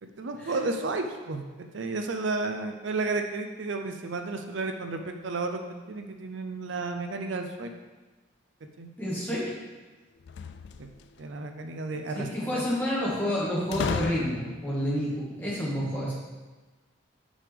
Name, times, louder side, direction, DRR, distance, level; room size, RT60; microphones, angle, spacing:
voice 1, 0.0-7.7 8.8-8.9 10.8-10.9 11.2-12.6, right 3 dB, 70° right, 5 dB, 0.5 m, -32 dB
voice 2, 9.0-9.4 12.1-16.1, equal, 10° left, -7 dB, 1.8 m, -29 dB
sound 1, 10.2-11.2 13.7-14.8, left 5 dB, 60° left, 0.3 m, -34 dB
8.7 x 5.0 x 3.5 m, 1.3 s
head